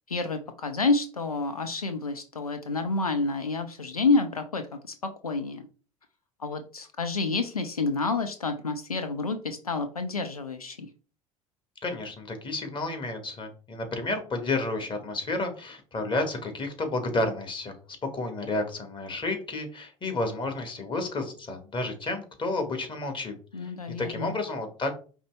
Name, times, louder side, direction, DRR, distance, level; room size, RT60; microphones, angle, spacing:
voice 1, 0.1-5.0 5.2-5.7 6.4-10.9 23.5-24.4, left 3 dB, 90° left, 8 dB, 0.4 m, -29 dB
voice 2, 11.8-17.7 18.1-23.7 24.0-24.9, left 2 dB, 25° left, 5 dB, 1.5 m, -31 dB
5.1 x 3.0 x 3.3 m, 0.37 s
figure-of-eight pair, 65°, 18 cm